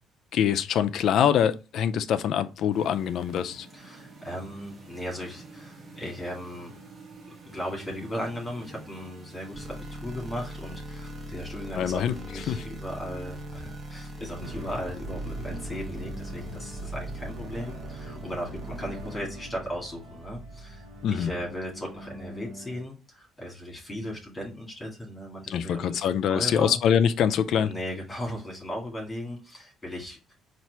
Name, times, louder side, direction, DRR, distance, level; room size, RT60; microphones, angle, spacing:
voice 1, 0.3-3.7 11.8-12.1 12.5-12.6 21.0-21.3 25.5-27.7, left 8 dB, 55° left, 0.4 m, -24 dB
sound 1, 2.7-19.2, equal, 25° right, 0.7 m, -43 dB
voice 2, 3.4-6.8 7.5-20.8 21.1-26.8 27.7-30.3, equal, 10° left, 1.7 m, -37 dB
sound 2, 14.4-22.8, right 2 dB, 80° right, 1.1 m, -40 dB
4.2 x 2.5 x 4.5 m
cardioid pair, 170°, 0 cm